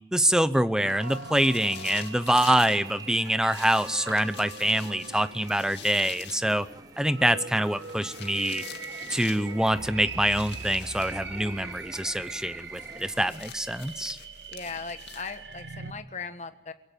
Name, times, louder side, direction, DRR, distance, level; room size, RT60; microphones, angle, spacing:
voice 1, 0.1-6.7 7.0-8.6 9.1-14.2, right 1 dB, 5° right, 14 dB, 0.7 m, -25 dB
sound 1, 0.8-15.9, right 4 dB, 85° right, 1.9 m, -42 dB
sound 2, 0.9-2.8 3.5-6.5 7.7-9.5 10.2-11.2 12.8-15.6, left 9 dB, 80° left, 2.2 m, -45 dB
sound 3, 2.1-13.4, right 2 dB, 20° right, 1.4 m, -49 dB
voice 2, 14.5-16.7, left 5 dB, 40° left, 9 dB, 1.5 m, -38 dB
23.0 x 17.0 x 9.1 m, 0.94 s
head